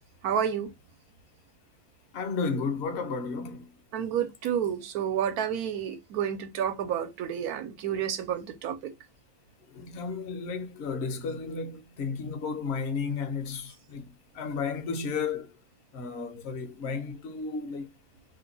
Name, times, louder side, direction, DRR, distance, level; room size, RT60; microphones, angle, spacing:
voice 1, 0.2-0.7 3.9-8.9, right 9 dB, 80° right, 1.1 m, -30 dB
voice 2, 2.1-3.7 9.7-15.5 15.9-17.9, left 5 dB, 55° left, 0.8 m, -33 dB
2.8 x 2.2 x 3.9 m
omnidirectional pair, 1.6 m